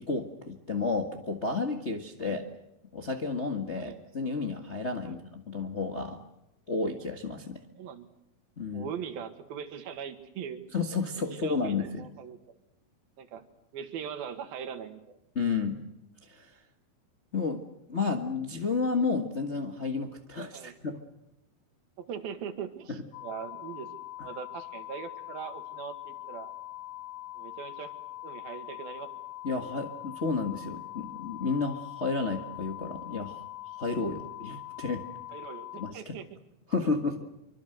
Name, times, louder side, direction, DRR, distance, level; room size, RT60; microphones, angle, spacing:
voice 1, 0.0-2.4 2.9-6.2 6.7-7.6 8.6-8.9 10.7-12.0 15.3-15.8 16.3-16.5 17.3-17.6 17.9-21.0 22.9-23.0 29.4-33.4 33.8-35.0 35.8-36.1 36.7-37.2, left 4 dB, 40° left, 3 dB, 1.0 m, -31 dB
voice 2, 7.8-8.1 8.7-10.6 11.2-12.6 13.2-13.4 13.7-15.2 20.5-20.7 22.0-23.9 24.2-26.5 27.4-27.9 28.2-29.1 35.3-36.3, right 8 dB, 85° right, 8 dB, 3.7 m, -41 dB
sound 1, 23.1-35.9, left 16 dB, 65° left, 2.5 m, -43 dB
26.0 x 24.5 x 7.9 m, 0.86 s
omnidirectional pair, 4.1 m